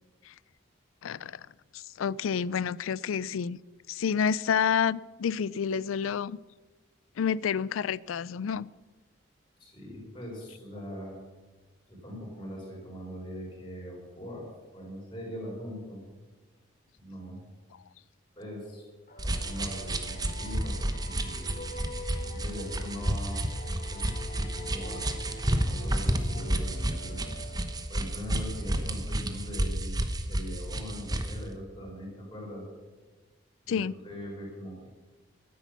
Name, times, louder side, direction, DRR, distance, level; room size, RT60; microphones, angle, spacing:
voice 1, 1.0-1.5 1.7-3.6 3.9-6.4 7.2-8.7 33.7-34.0, left 7 dB, 85° left, 0.4 m, -29 dB
voice 2, 9.6-11.1 11.9-14.5 14.7-16.0 17.0-17.4 18.4-18.8 19.2-20.8 21.0-21.5 22.3-23.4 23.9-27.2 27.9-30.0 30.3-32.6 33.6-33.8 34.0-34.9, equal, 25° left, 5.1 m, -41 dB
sound 1, 19.1-28.5, left 1 dB, 40° left, 1.3 m, -46 dB
sound 2, 19.2-31.4, right 1 dB, 20° right, 0.9 m, -31 dB
12.5 x 10.5 x 7.0 m
head